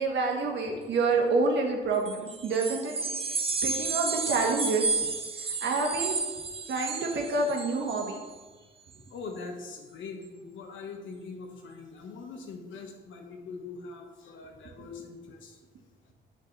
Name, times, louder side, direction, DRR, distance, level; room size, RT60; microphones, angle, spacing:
voice 1, 0.0-2.9 3.6-5.1 5.6-6.2 6.7-8.2, right 3 dB, 65° right, 1 dB, 1.4 m, -27 dB
sound 1, 2.0-8.2, right 4 dB, 30° right, 0.7 m, -32 dB
voice 2, 9.1-15.6, left 4 dB, 75° left, 3 dB, 1.2 m, -42 dB
6.4 x 5.2 x 3.9 m, 1.3 s
cardioid pair, 90°, 20 cm